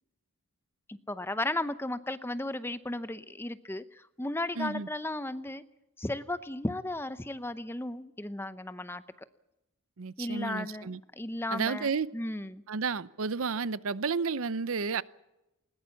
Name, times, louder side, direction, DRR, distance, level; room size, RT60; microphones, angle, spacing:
voice 1, 0.9-5.6 6.0-9.0 10.2-12.6, left 1 dB, 10° left, 0.7 m, -35 dB
voice 2, 4.6-4.9 10.0-11.0 11.5-12.1 12.7-15.0, right 5 dB, 70° right, 0.7 m, -31 dB
20.5 x 19.0 x 7.1 m
head